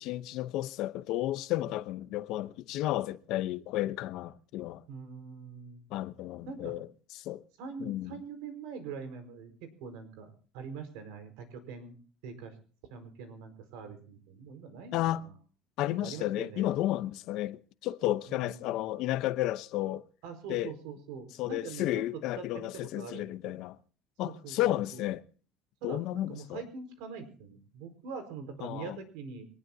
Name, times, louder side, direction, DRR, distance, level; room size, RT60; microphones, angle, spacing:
voice 1, 0.0-4.8 5.9-6.9 7.2-7.4 7.8-8.2 14.9-15.2 15.8-20.1 20.5-20.7 21.4-23.8 24.2-25.2 25.8-26.6 28.6-29.0, left 14 dB, 55° left, 0.8 m, -32 dB
voice 2, 4.9-5.8 6.4-6.7 7.6-12.0 12.2-12.6 12.9-15.3 16.0-16.7 18.3-18.9 20.2-21.9 22.4-22.7 23.0-23.5 24.2-25.0 25.8-29.5, right 5 dB, 80° right, 4.8 m, -44 dB
24.0 x 19.0 x 2.8 m
cardioid pair, 160°, 0 cm